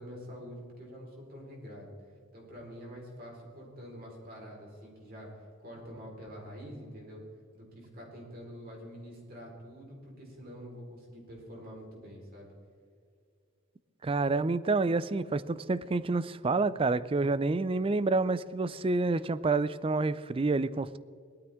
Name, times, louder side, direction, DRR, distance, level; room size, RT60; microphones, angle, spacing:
voice 1, 0.0-7.2 7.5-12.5, equal, 45° right, -2 dB, 4.2 m, -46 dB
voice 2, 14.0-21.0, right 3 dB, 25° right, 17 dB, 0.4 m, -28 dB
18.5 x 13.0 x 3.6 m, 2.2 s
head